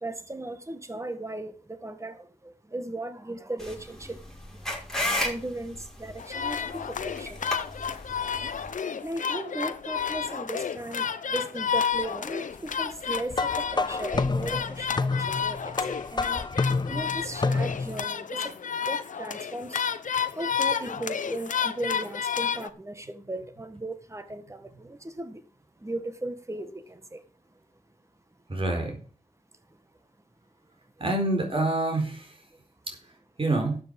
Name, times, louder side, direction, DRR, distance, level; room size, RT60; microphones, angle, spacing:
voice 1, 0.0-4.2 5.2-7.7 9.0-16.4 16.9-18.5 18.8-19.8 20.3-25.4 25.8-27.2, right 2 dB, 20° right, 10 dB, 1.7 m, -37 dB
sound 1, 3.6-8.7, left 1 dB, 5° left, 5.6 m, -34 dB
sound 2, 6.2-22.7, left 7 dB, 80° left, 0.8 m, -31 dB
sound 3, 13.3-18.0, left 3 dB, 35° left, 0.5 m, -29 dB
voice 2, 28.5-29.0 31.0-32.3 32.9-33.0 33.4-33.8, right 2 dB, 45° right, 3 dB, 4.4 m, -26 dB
12.0 x 8.2 x 5.4 m, 0.40 s
cardioid pair, 45°, 13 cm